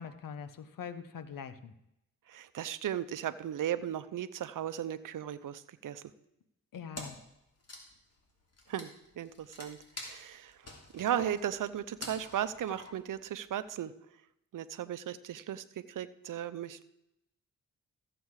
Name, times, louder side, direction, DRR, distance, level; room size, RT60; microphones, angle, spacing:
voice 1, 0.0-1.7 6.7-7.1, left 7 dB, 75° left, 12 dB, 1.0 m, -43 dB
voice 2, 2.3-6.0 8.7-8.9 9.2-10.6 10.9-13.9 14.5-16.8, right 10 dB, 65° right, 12 dB, 0.8 m, -36 dB
Wood, 6.9-7.3 7.6-13.2, left 2 dB, 45° left, 3.1 m, -47 dB
14.5 x 7.9 x 4.8 m, 0.83 s
cardioid pair, 65°, 34 cm